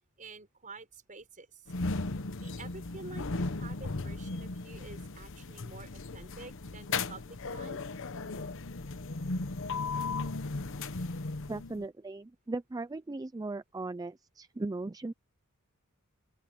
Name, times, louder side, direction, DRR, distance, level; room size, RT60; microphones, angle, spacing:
voice 1, 0.2-1.7 2.4-7.8, right 3 dB, 35° right, 5.9 m, -49 dB
sound 1, 1.7-11.8, left 3 dB, 60° left, 1.0 m, -36 dB
voice 2, 11.5-15.1, right 2 dB, 15° right, 0.4 m, -38 dB
open air
head